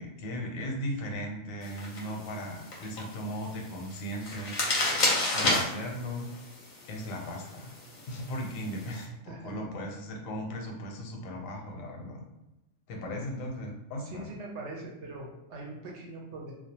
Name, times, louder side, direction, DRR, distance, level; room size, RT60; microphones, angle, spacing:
voice 1, 0.0-4.6 5.3-6.3 6.9-7.7 8.1-12.3 12.9-14.3, equal, 85° left, 1 dB, 1.0 m, -37 dB
sound 1, 1.6-9.0, left 2 dB, 50° left, 0.6 m, -33 dB
voice 2, 9.3-9.7 13.0-13.2 14.0-16.5, right 2 dB, 65° right, -1 dB, 0.8 m, -42 dB
2.3 x 2.2 x 2.7 m, 0.96 s
omnidirectional pair, 1.3 m